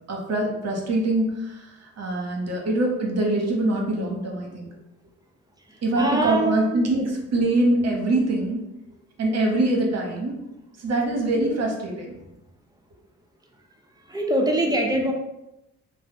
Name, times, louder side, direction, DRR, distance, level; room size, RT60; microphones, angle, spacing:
voice 1, 0.0-4.7 5.8-8.6 9.2-10.4 10.8-12.2, right 2 dB, 50° right, 0 dB, 0.9 m, -24 dB
voice 2, 6.0-6.7 14.1-15.1, right 1 dB, 10° right, 2 dB, 0.6 m, -23 dB
2.6 x 2.0 x 3.7 m, 0.90 s
hypercardioid pair, 50°, 33 cm